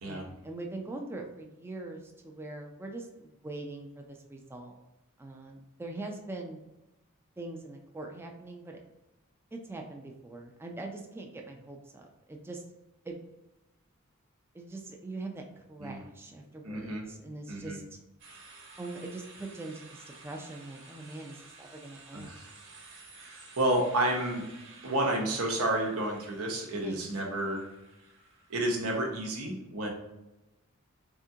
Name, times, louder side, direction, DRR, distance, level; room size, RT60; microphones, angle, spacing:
voice 1, 0.0-4.8 5.2-6.6 7.4-8.8 9.5-12.6 13.0-13.2 14.5-18.0 18.8-22.3 26.8-27.0, right 2 dB, 10° right, 1 dB, 0.4 m, -42 dB
voice 2, 16.6-17.0 17.5-17.8 22.1-22.5 23.2-24.4 24.8-27.6 28.5-29.9, right 1 dB, 85° right, 0 dB, 1.0 m, -30 dB
sound 1, 18.2-29.2, right 3 dB, 60° right, 1.1 m, -53 dB
3.6 x 3.5 x 2.7 m, 0.97 s
head